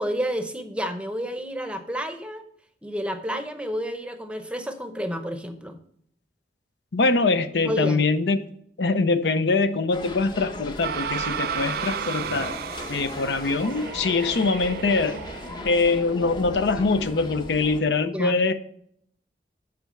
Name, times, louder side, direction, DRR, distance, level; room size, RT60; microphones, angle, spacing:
voice 1, 0.0-2.4 2.8-5.8 7.5-8.0 18.0-18.4, equal, 5° right, 7 dB, 0.7 m, -30 dB
voice 2, 6.9-8.4 8.8-12.5 12.9-15.2 15.6-18.5, left 3 dB, 70° left, 11 dB, 0.6 m, -23 dB
sound 1, 9.9-17.8, left 1 dB, 25° left, 0.7 m, -38 dB
sound 2, 10.8-15.9, right 8 dB, 55° right, 0.3 m, -33 dB
8.4 x 4.6 x 6.3 m, 0.68 s
head